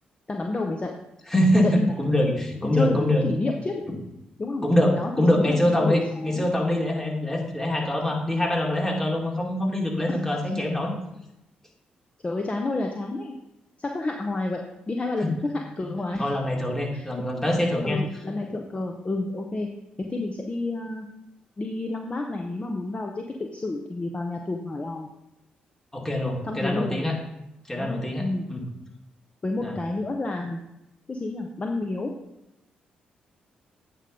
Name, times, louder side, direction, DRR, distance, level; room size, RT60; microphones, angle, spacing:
voice 1, 0.3-0.9 1.6-1.9 2.6-3.8 4.4-4.7 4.9-6.4 10.1-10.2 12.2-13.4 13.8-16.3 16.9-17.1 17.8-19.7 20.0-21.1 21.6-25.1 26.4-27.1 27.7-28.4 29.4-30.6 31.1-32.1, left 2 dB, 30° left, 3 dB, 0.9 m, -30 dB
voice 2, 1.3-3.3 3.9-4.0 4.6-10.9 15.2-15.3 16.2-18.0 25.9-27.2 27.7-28.6 29.6-29.8, left 1 dB, 10° left, 0 dB, 2.3 m, -24 dB
8.8 x 3.8 x 5.2 m, 0.88 s
hypercardioid pair, 45°, 4 cm